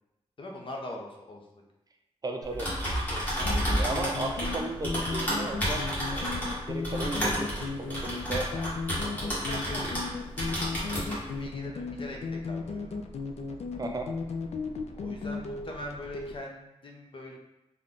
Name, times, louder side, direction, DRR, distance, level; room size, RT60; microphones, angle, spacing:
voice 1, 0.4-1.4 2.7-2.8 3.1-3.6 8.5-8.7 9.1-10.0 10.4-13.1 15.0-17.4, left 1 dB, 55° left, 1 dB, 0.6 m, -42 dB
voice 2, 2.2-2.7 3.6-7.5 7.8-8.5 13.8-14.1, right 3 dB, 35° right, 3 dB, 0.4 m, -35 dB
Typing, 2.4-10.1 10.4-11.2, equal, 15° left, 1.3 m, -31 dB
sound 1, 3.4-16.4, left 4 dB, 90° left, 0.4 m, -36 dB
3.7 x 2.2 x 3.6 m, 0.92 s
wide cardioid pair, 120°, 11 cm